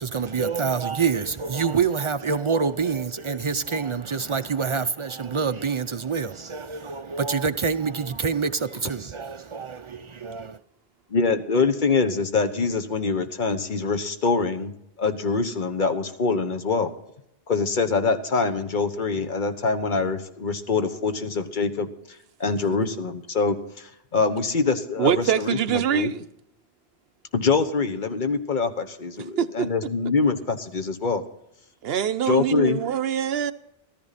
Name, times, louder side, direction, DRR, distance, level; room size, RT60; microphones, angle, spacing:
voice 1, 0.0-10.6, right 5 dB, 50° right, 0.3 m, -26 dB
voice 2, 11.1-14.7 15.0-16.9 17.5-21.9 22.4-26.1 27.3-31.2 32.3-32.8, left 4 dB, 50° left, 1.2 m, -24 dB
voice 3, 25.0-26.1 29.4-29.7 31.8-33.5, right 9 dB, 70° right, 0.9 m, -24 dB
14.0 x 14.0 x 4.1 m
omnidirectional pair, 1.1 m